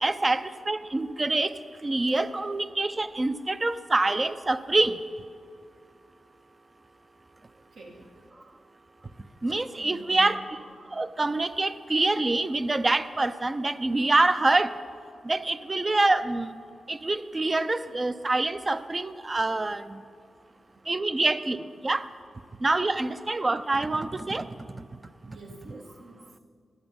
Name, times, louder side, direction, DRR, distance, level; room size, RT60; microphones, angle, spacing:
voice 1, 0.0-1.5 1.8-4.9 9.4-10.4 10.9-14.7 15.3-16.5 16.9-19.8 20.9-21.6 21.8-22.0 22.6-24.5, right 2 dB, 30° right, 12 dB, 0.5 m, -25 dB
voice 2, 7.7-8.1 9.7-10.4 20.4-21.2 25.2-26.4, right 1 dB, 80° right, 0 dB, 1.4 m, -48 dB
11.5 x 7.8 x 5.3 m, 2.2 s
cardioid pair, 65°, 0 cm